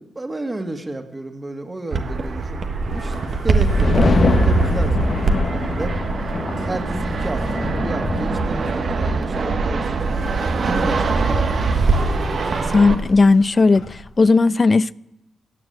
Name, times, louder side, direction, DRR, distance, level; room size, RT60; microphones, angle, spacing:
voice 1, 0.2-3.1 3.4-5.1 5.5-6.0 6.7-11.4, right 2 dB, 30° right, 2.2 m, -31 dB
Fixed-wing aircraft airplane, 1.9-12.9, right 3 dB, 65° right, 1.5 m, -22 dB
sound 1, 2.9-5.5 6.6-8.1 8.6-14.2, left 3 dB, 90° left, 4.3 m, -43 dB
sound 2, 3.6-9.1, left 4 dB, 60° left, 1.2 m, -24 dB
voice 2, 12.7-14.9, left 3 dB, 45° left, 0.4 m, -15 dB
16.5 x 7.1 x 9.4 m
supercardioid pair, 45°, 0 cm